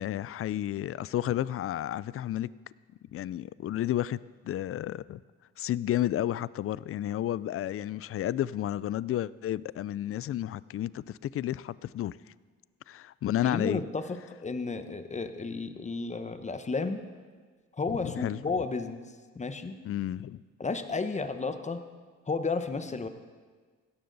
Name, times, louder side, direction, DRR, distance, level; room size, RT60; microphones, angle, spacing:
voice 1, 0.0-2.5 3.1-5.2 5.6-12.2 12.9-13.8 17.9-18.4 19.8-20.4, left 12 dB, 50° left, 0.4 m, -32 dB
voice 2, 13.4-17.0 17.8-19.0 19.3-19.8 20.6-21.8 22.3-23.1, left 4 dB, 25° left, 1.0 m, -32 dB
17.0 x 12.5 x 4.0 m
cardioid pair, 90°, 30 cm